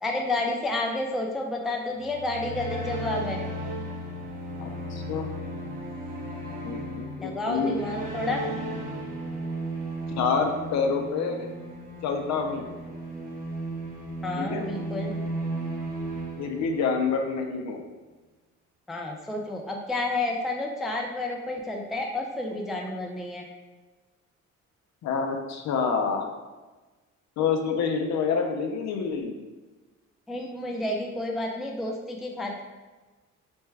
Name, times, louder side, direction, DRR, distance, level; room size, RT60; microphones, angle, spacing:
voice 1, 0.0-3.4 7.2-8.4 14.2-15.1 18.9-23.4 30.3-32.6, left 2 dB, ahead, 0 dB, 0.3 m, -30 dB
sound 1, 1.9-17.2, right 1 dB, 30° right, 0.8 m, -35 dB
voice 2, 4.6-5.3 6.6-7.7 10.2-11.5 12.0-12.7 14.4-14.7 16.4-17.8 25.0-26.3 27.4-29.4, left 5 dB, 65° left, 4 dB, 0.4 m, -27 dB
3.4 x 2.1 x 3.2 m, 1.2 s
cardioid pair, 90°, 30 cm